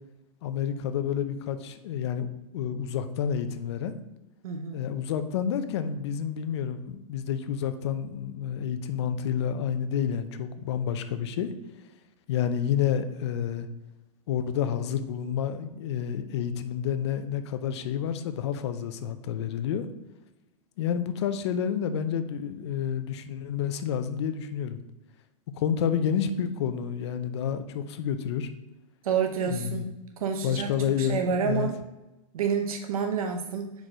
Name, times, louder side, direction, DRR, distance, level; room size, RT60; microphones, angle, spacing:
voice 1, 0.4-2.3 2.5-3.9 4.7-11.5 12.3-13.7 14.3-19.9 20.8-24.8 25.5-28.5 29.4-29.9 30.4-31.7, left 8 dB, 50° left, 10 dB, 0.6 m, -29 dB
voice 2, 4.4-4.8 29.0-29.9 30.2-30.7 31.0-31.7 32.3-33.7, right 6 dB, 80° right, 5 dB, 0.8 m, -28 dB
4.7 x 4.3 x 5.1 m, 0.98 s
supercardioid pair, 165°, 18 cm